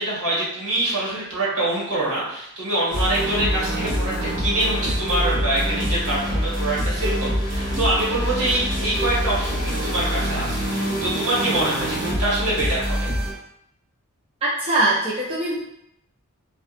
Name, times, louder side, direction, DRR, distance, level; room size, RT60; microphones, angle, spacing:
voice 1, 0.0-13.0, right 1 dB, 85° right, -6 dB, 1.1 m, -25 dB
sound 1, 2.9-13.3, equal, 55° right, 1.3 m, -25 dB
voice 2, 14.4-15.6, right 2 dB, 25° right, -5 dB, 0.3 m, -22 dB
2.6 x 2.2 x 2.4 m, 0.78 s
head